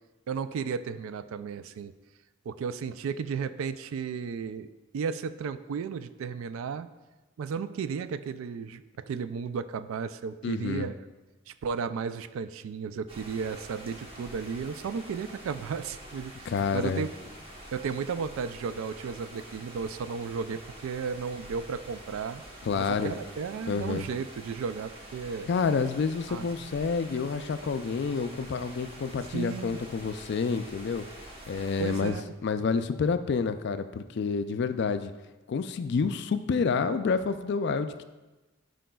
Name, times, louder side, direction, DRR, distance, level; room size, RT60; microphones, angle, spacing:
voice 1, 0.3-1.9 2.5-4.7 4.9-6.9 7.4-11.0 11.5-17.1 17.7-22.4 22.8-25.5 26.3-26.7 29.3-29.8 31.8-32.3, right 6 dB, 75° right, 13 dB, 0.3 m, -34 dB
voice 2, 10.4-10.9 16.5-17.0 22.6-23.1 23.7-24.1 25.5-31.1 31.5-32.2 32.4-35.1 35.5-38.0, left 5 dB, 55° left, 10 dB, 0.3 m, -28 dB
sound 1, 13.1-32.1, right 1 dB, 25° right, 0.9 m, -47 dB
11.5 x 5.1 x 2.3 m, 1.2 s
head